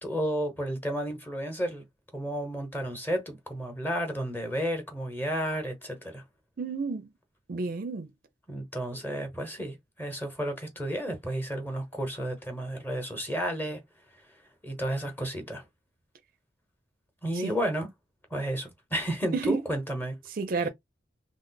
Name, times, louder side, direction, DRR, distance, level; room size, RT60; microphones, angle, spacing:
voice 1, 0.0-1.8 2.1-6.2 8.5-13.8 14.6-15.6 17.2-17.9 18.3-20.2, equal, 10° left, 0.9 m, -32 dB
voice 2, 6.6-7.1 7.5-8.1 17.3-17.5 19.3-19.6 20.3-20.7, right 4 dB, 50° right, 0.4 m, -30 dB
3.2 x 2.0 x 3.9 m
head